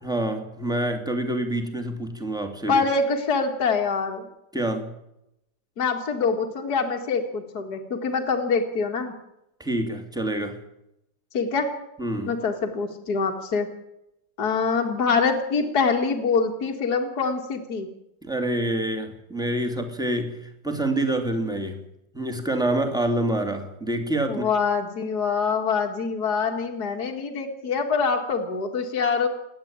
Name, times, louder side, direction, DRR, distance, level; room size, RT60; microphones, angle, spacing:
voice 1, 0.0-2.8 4.5-4.9 9.6-10.6 12.0-12.4 18.2-21.8 22.1-24.5, right 1 dB, ahead, 4 dB, 2.8 m, -27 dB
voice 2, 2.7-4.3 5.8-9.1 11.3-11.7 12.3-13.7 14.4-17.9 24.3-29.3, left 5 dB, 60° left, 4 dB, 2.6 m, -25 dB
28.5 x 11.0 x 8.9 m, 0.84 s
omnidirectional pair, 2.0 m